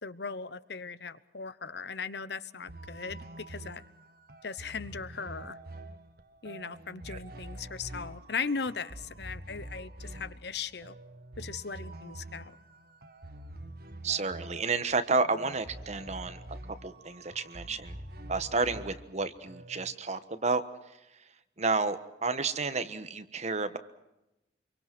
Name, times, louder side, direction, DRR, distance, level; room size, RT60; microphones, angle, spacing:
voice 1, 0.0-3.8 4.4-5.6 6.4-11.0 11.4-12.6, left 5 dB, 65° left, 15 dB, 1.0 m, -38 dB
sound 1, 2.7-20.0, right 1 dB, 55° right, 1.7 m, -46 dB
voice 2, 14.0-16.4 16.8-18.0 18.3-20.6 21.6-23.8, right 4 dB, 40° right, 11 dB, 1.3 m, -31 dB
26.5 x 23.5 x 6.1 m, 0.93 s
head